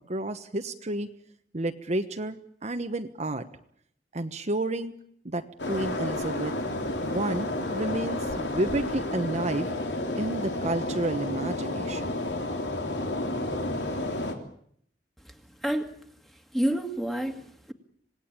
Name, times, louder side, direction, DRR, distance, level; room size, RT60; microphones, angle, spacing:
voice 1, 0.1-1.1 1.5-3.4 4.1-4.9 5.2-6.5 7.0-9.7 10.2-12.2, right 1 dB, 40° right, 7 dB, 1.2 m, -31 dB
sound 1, 5.6-14.3, left 1 dB, 80° left, 3.4 m, -31 dB
voice 2, 15.6-16.0 16.5-17.7, right 1 dB, ahead, 6 dB, 2.1 m, -29 dB
26.5 x 18.5 x 8.8 m, 0.67 s
head